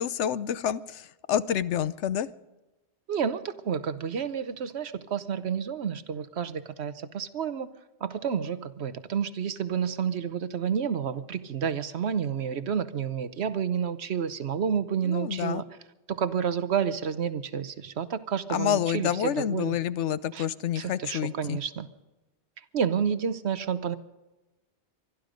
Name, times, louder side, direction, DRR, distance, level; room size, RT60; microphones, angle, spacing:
voice 1, 0.0-2.3 15.0-15.6 18.5-21.6, left 10 dB, 80° left, 16 dB, 1.0 m, -28 dB
voice 2, 3.1-7.7 8.0-15.6 16.1-19.8 20.3-20.5 20.8-21.9 22.7-24.0, right 7 dB, 70° right, 13 dB, 1.1 m, -30 dB
24.0 x 11.5 x 5.2 m, 1.0 s
omnidirectional pair, 1.2 m